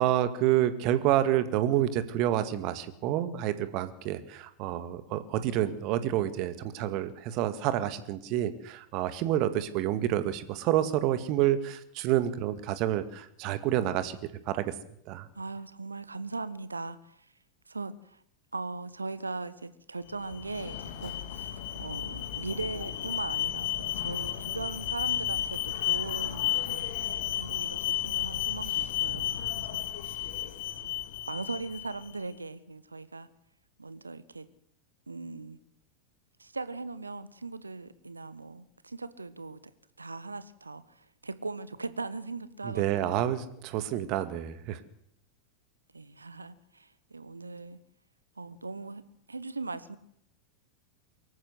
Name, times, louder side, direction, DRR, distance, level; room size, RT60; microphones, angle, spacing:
voice 1, 0.0-14.2 14.5-14.7 15.1-15.3 42.6-44.8, right 12 dB, 40° right, 1.9 m, -28 dB
voice 2, 15.3-17.2 17.7-18.2 18.5-26.9 27.4-30.4 31.2-33.3 33.8-34.5 35.1-35.6 36.4-39.6 40.0-43.2 45.9-47.8 48.4-49.0 49.3-50.0, right 3 dB, 80° right, 1.3 m, -39 dB
Alarm, 20.1-32.1, left 12 dB, 55° left, 2.5 m, -33 dB
24.0 x 14.0 x 8.2 m
figure-of-eight pair, 90°, 0 cm